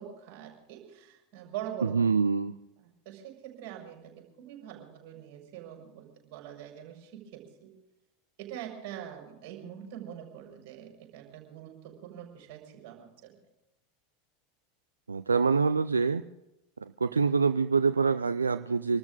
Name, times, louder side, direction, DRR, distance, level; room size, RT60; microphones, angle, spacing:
voice 1, 0.0-2.0 2.8-7.7 8.4-13.3, right 10 dB, 50° right, 1 dB, 5.8 m, -44 dB
voice 2, 1.8-2.6 15.1-16.2 16.8-19.0, right 5 dB, 80° right, 12 dB, 0.4 m, -25 dB
26.5 x 13.0 x 3.8 m, 0.89 s
figure-of-eight pair, 85°, 0 cm